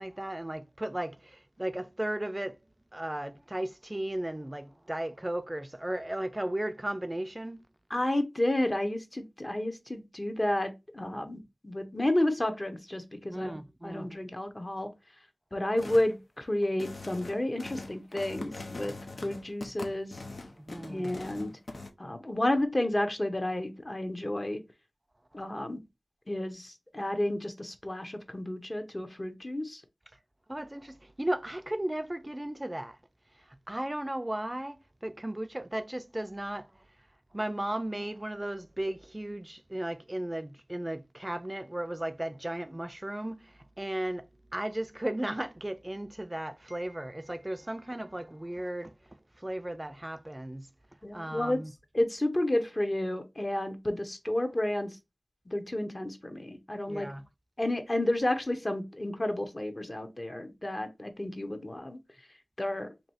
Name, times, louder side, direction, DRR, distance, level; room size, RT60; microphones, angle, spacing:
voice 1, 0.0-2.6 2.9-7.6 13.3-14.1 20.6-21.1 30.5-33.0 33.7-34.8 35.0-36.7 37.3-43.5 43.8-44.3 44.5-48.9 49.4-50.7 51.1-51.7 56.9-57.2, right 1 dB, 25° right, 0.3 m, -35 dB
voice 2, 7.9-13.6 13.8-14.9 15.5-19.0 19.2-20.2 20.9-21.5 22.0-24.6 25.3-25.8 26.3-29.8 51.0-51.6 51.9-55.0 55.5-57.1 57.6-62.0 62.6-62.9, left 1 dB, 40° left, 0.9 m, -31 dB
sound 1, 15.8-16.1 16.6-21.9, left 2 dB, 80° left, 0.6 m, -42 dB
2.9 x 2.7 x 4.2 m
wide cardioid pair, 40°, 0 cm